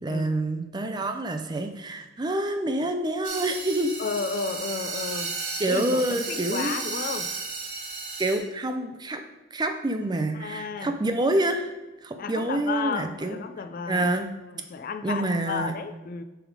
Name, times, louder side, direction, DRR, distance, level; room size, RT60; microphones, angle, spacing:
voice 1, 0.0-3.9 5.6-6.7 8.2-9.2 9.5-11.7 12.0-13.4 13.9-14.3 15.0-15.7, right 1 dB, 20° right, 6 dB, 0.5 m, -27 dB
sound 1, 3.2-8.4, right 4 dB, 40° right, 1.4 m, -34 dB
voice 2, 4.0-5.3 5.7-7.3 10.3-10.9 12.2-14.1 14.4-16.2, left 5 dB, 45° left, 9 dB, 0.3 m, -33 dB
7.4 x 3.5 x 4.6 m, 1.1 s
head